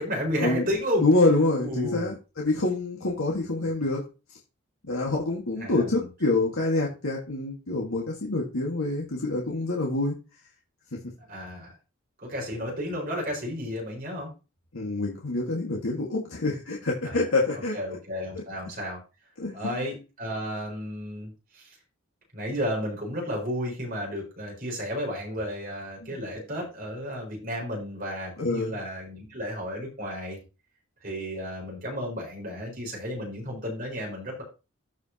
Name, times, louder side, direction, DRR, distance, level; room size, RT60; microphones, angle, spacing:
voice 1, 0.0-1.0 1.6-2.1 3.6-3.7 5.6-6.1 11.3-11.7 12.2-14.3 17.0-17.2 17.7-19.0 19.5-21.7 22.3-30.4 31.0-34.4, equal, 45° right, -2 dB, 4.9 m, -32 dB
voice 2, 1.0-4.0 4.8-10.1 14.7-17.8 19.4-19.8 26.0-26.1 28.4-28.7, left 2 dB, 80° left, -2 dB, 1.8 m, -26 dB
14.5 x 5.3 x 2.9 m, 0.30 s
head